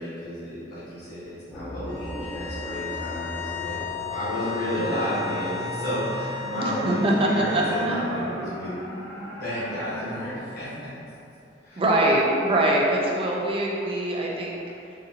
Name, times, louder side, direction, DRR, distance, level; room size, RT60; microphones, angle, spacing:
voice 1, 0.0-3.8 4.1-8.7 9.1-10.9 11.6-11.8, equal, 55° left, -12 dB, 1.1 m, -32 dB
sound 1, 1.5-10.3, equal, 15° left, 0.6 m, -37 dB
sound 2, 1.9-8.0, left 7 dB, 85° left, 0.5 m, -35 dB
voice 2, 6.6-8.0 11.8-14.6, right 1 dB, 30° right, -2 dB, 0.4 m, -23 dB
3.9 x 2.6 x 2.7 m, 2.7 s
head